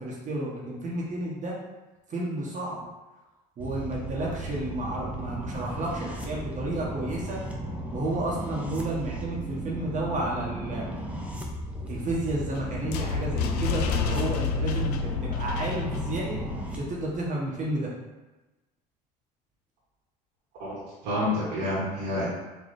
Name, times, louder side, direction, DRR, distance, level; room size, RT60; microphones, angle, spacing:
voice 1, 0.0-1.5 2.1-2.9 3.6-7.4 7.9-10.9 11.8-16.4 16.7-17.9, right 2 dB, 40° right, -4 dB, 1.0 m, -31 dB
sound 1, 3.6-16.8, right 1 dB, 5° right, 0.8 m, -35 dB
sound 2, 12.0-17.2, left 6 dB, 85° left, 0.4 m, -30 dB
voice 2, 20.6-22.3, left 1 dB, 65° right, -7 dB, 1.3 m, -29 dB
4.0 x 2.8 x 3.3 m, 1.1 s
hypercardioid pair, 80°, 20 cm